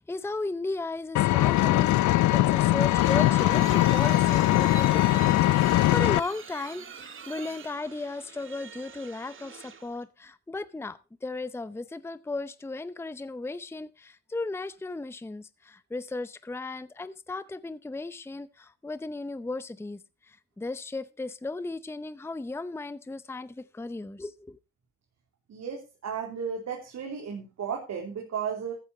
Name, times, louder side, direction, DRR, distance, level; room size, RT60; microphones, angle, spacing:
voice 1, 0.0-24.6, left 3 dB, 10° left, 0.7 m, -36 dB
Engine, 1.2-6.2, left 16 dB, 70° left, 0.5 m, -21 dB
sound 1, 2.5-10.0, right 6 dB, 40° right, 2.0 m, -44 dB
voice 2, 25.5-28.7, right 7 dB, 60° right, 3.4 m, -34 dB
14.5 x 8.9 x 4.2 m
cardioid pair, 90°, 30 cm